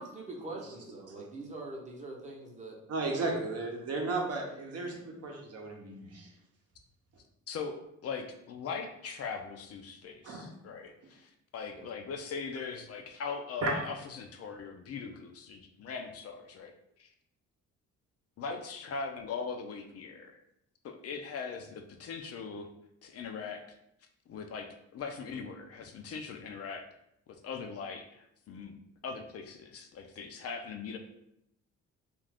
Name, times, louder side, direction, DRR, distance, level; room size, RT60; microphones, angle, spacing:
voice 1, 0.0-3.3 11.8-11.9, right 2 dB, 25° right, -2 dB, 0.8 m, -44 dB
voice 2, 2.9-6.3 10.2-10.5 13.6-13.7, right 3 dB, 55° right, 1 dB, 0.8 m, -34 dB
voice 3, 7.5-16.7 17.0-17.1 18.4-20.4 20.8-22.7 23.0-23.6 24.3-24.7 24.9-26.8 27.4-31.0, left 5 dB, 55° left, 5 dB, 0.4 m, -40 dB
2.4 x 2.4 x 3.4 m, 0.77 s
cardioid pair, 90°, 30 cm